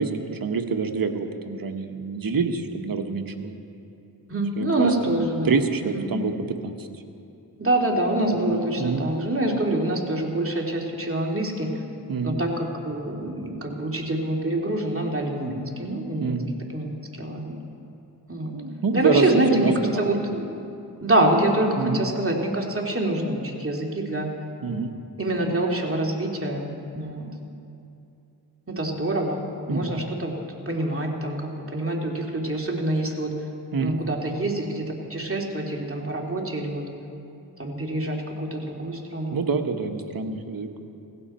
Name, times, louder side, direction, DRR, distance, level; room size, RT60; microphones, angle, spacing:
voice 1, 0.0-3.6 4.6-5.2 5.4-6.9 8.8-9.1 12.1-12.4 16.2-16.5 18.5-20.2 21.8-22.0 24.6-24.9 29.7-30.0 33.7-34.0 39.3-40.7, right 4 dB, 50° right, 5 dB, 1.4 m, -26 dB
voice 2, 4.3-5.5 5.8-6.1 7.6-11.7 12.2-16.3 16.7-16.9 17.2-17.6 18.3-18.6 18.9-19.7 20.0-20.6 21.0-24.3 25.2-27.3 28.7-30.3 30.7-33.3 33.8-36.8 37.6-39.4, right 1 dB, 30° right, 0 dB, 2.8 m, -26 dB
18.0 x 16.0 x 4.4 m, 2.7 s
cardioid pair, 50°, 44 cm